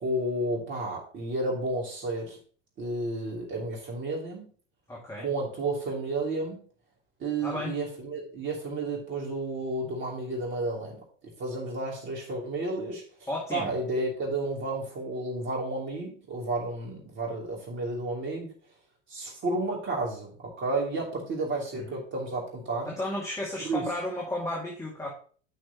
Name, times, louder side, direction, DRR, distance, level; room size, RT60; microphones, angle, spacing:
voice 1, 0.0-2.4 2.8-4.5 5.2-6.6 7.2-11.0 11.4-18.5 19.1-22.9 23.6-23.8, right 2 dB, 30° right, -2 dB, 3.0 m, -32 dB
voice 2, 4.9-5.3 7.4-7.7 13.3-13.7 21.9-22.0 22.9-25.1, left 1 dB, 10° left, -4 dB, 2.1 m, -33 dB
9.6 x 6.1 x 2.9 m, 0.43 s
figure-of-eight pair, 85°, 38 cm